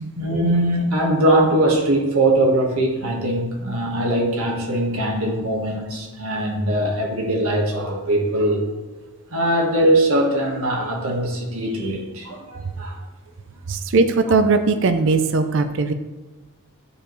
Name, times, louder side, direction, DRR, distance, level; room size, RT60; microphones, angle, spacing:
voice 1, 0.0-8.7 9.3-12.9, right 1 dB, 75° right, 0 dB, 1.5 m, -21 dB
voice 2, 13.7-15.9, right 3 dB, 60° right, 9 dB, 0.5 m, -19 dB
9.9 x 4.6 x 3.1 m, 1.3 s
head